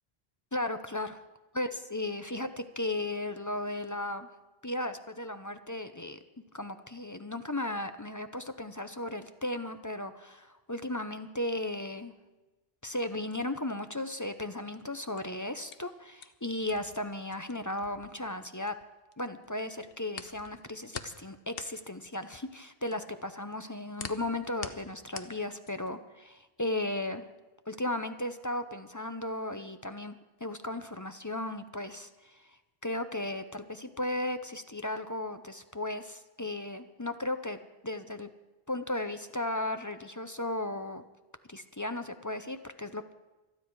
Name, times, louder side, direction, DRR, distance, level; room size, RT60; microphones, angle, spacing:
voice 1, 0.5-1.2 1.5-4.3 4.6-6.2 6.5-12.1 12.8-18.7 19.2-27.3 27.7-30.2 30.4-32.3 32.8-37.6 37.8-38.3 38.7-41.0 41.5-43.1, left 1 dB, 20° left, 9 dB, 0.6 m, -35 dB
sound 1, 15.0-19.1 19.4-26.0, left 7 dB, 65° left, 1.0 m, -45 dB
26.5 x 9.9 x 4.7 m, 1.1 s
omnidirectional pair, 1.0 m